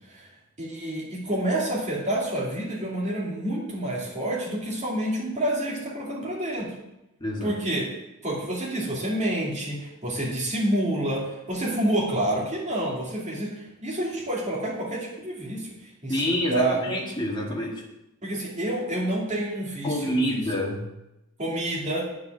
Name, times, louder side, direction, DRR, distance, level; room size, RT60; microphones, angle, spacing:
voice 1, 0.6-6.7 7.4-7.9 8.2-15.7 16.0-16.9 18.2-20.4 21.4-22.1, right 1 dB, 30° right, -4 dB, 2.6 m, -28 dB
voice 2, 7.2-7.6 16.1-17.8 19.8-20.8, equal, 20° left, -2 dB, 1.7 m, -27 dB
9.4 x 4.8 x 7.7 m, 0.90 s
head